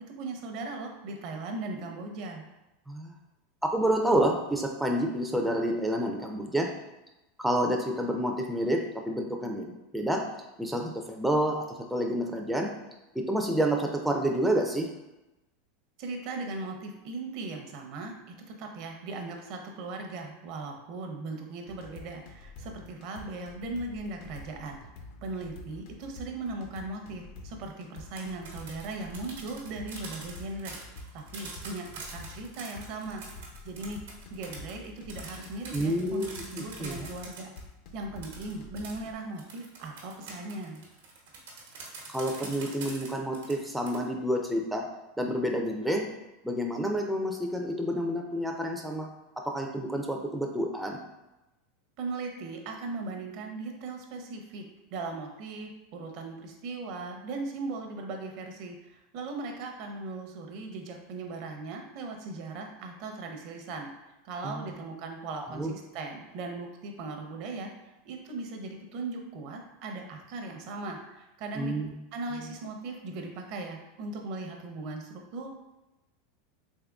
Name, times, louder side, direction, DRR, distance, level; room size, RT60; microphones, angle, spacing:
voice 1, 0.1-2.4 16.0-18.1 18.6-24.8 25.2-30.8 31.1-34.0 34.3-36.2 36.5-37.5 37.9-40.8 52.0-54.7 54.9-63.9 64.2-67.7 68.0-71.8 72.1-75.5, right 3 dB, 55° right, 3 dB, 0.6 m, -38 dB
voice 2, 2.9-3.2 3.6-6.7 7.4-10.2 10.6-12.7 13.1-14.9 35.7-36.3 36.8-37.1 42.1-44.9 45.2-46.0 46.4-49.1 49.4-51.0 64.4-64.7 65.3-65.7 71.6-71.9, right 1 dB, 5° right, 1 dB, 0.3 m, -29 dB
sound 1, 21.7-39.1, left 3 dB, 60° left, 0.5 m, -47 dB
sound 2, 28.0-37.6 38.2-44.0, right 4 dB, 90° right, 0.9 m, -44 dB
3.6 x 3.3 x 2.3 m, 0.97 s
supercardioid pair, 130°, 0 cm